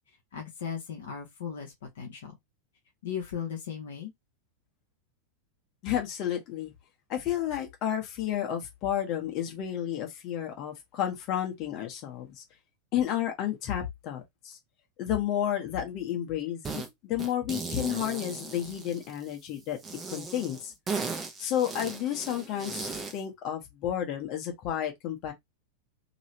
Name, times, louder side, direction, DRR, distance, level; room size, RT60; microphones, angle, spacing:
voice 1, 0.3-2.3 3.0-4.1, left 8 dB, 60° left, 1.1 m, -37 dB
voice 2, 5.8-6.7 7.1-12.4 12.9-14.6 15.0-19.8 20.1-20.7 21.4-22.8 23.1-25.3, left 10 dB, 40° left, 1.2 m, -31 dB
sound 1, 16.6-16.9 17.2-19.3 19.8-23.2, right 4 dB, 20° right, 1.0 m, -37 dB
3.0 x 2.9 x 2.9 m
figure-of-eight pair, 90°, 0 cm